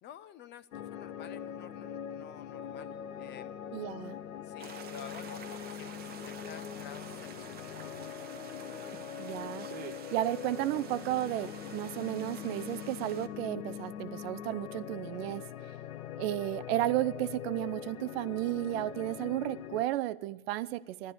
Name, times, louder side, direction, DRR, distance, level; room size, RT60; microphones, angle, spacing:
voice 1, 0.0-3.6 4.4-7.7 15.1-15.4, left 10 dB, 25° left, 0.5 m, -50 dB
sound 1, 0.7-19.9, left 9 dB, 75° left, 0.8 m, -42 dB
voice 2, 3.7-4.2 9.2-9.7 10.1-15.5 16.2-21.1, right 15 dB, 50° right, 0.5 m, -33 dB
sound 2, 4.6-13.3, right 8 dB, 25° right, 0.8 m, -49 dB
14.0 x 11.5 x 8.4 m
hypercardioid pair, 100°, 42 cm